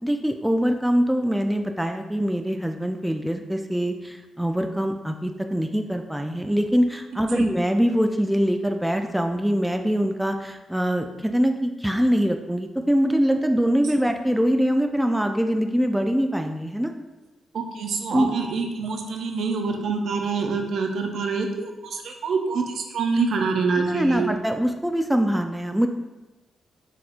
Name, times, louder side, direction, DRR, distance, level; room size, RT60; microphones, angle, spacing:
voice 1, 0.0-16.9 18.1-18.3 23.7-25.9, equal, 5° right, 5 dB, 0.3 m, -23 dB
voice 2, 17.5-24.3, right 4 dB, 70° right, 4 dB, 0.5 m, -26 dB
4.2 x 4.2 x 2.5 m, 1.1 s
supercardioid pair, 55°, 0 cm